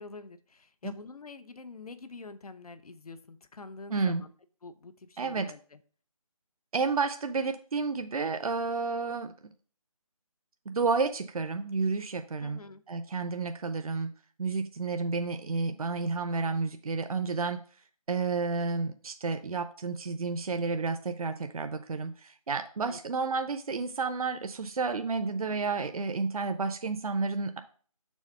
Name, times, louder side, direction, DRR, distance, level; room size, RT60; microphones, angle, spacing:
voice 1, 0.0-4.3 4.6-5.8 12.4-12.8 22.8-23.0, left 3 dB, 80° left, 13 dB, 0.7 m, -46 dB
voice 2, 3.9-4.2 5.2-5.5 6.7-9.3 10.7-12.6 12.9-14.1 14.4-17.6 18.1-27.6, right 4 dB, 75° right, 9 dB, 0.6 m, -31 dB
6.4 x 3.6 x 5.4 m, 0.43 s
figure-of-eight pair, 175°, 19 cm